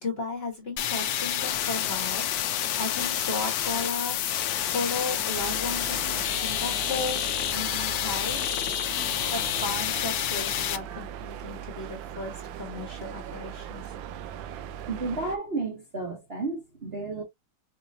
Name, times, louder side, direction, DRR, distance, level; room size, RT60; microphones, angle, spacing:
voice 1, 0.0-2.3 2.8-4.2 4.7-7.2 7.5-8.4 9.3-12.3 12.6-13.9, left 3 dB, 35° left, 1.3 m, -35 dB
sound 1, 0.8-10.8, left 11 dB, 70° left, 0.9 m, -28 dB
sound 2, 5.3-15.4, right 9 dB, 80° right, 1.3 m, -39 dB
voice 2, 14.9-17.2, right 3 dB, 40° right, 1.1 m, -32 dB
4.9 x 2.8 x 2.6 m
omnidirectional pair, 2.1 m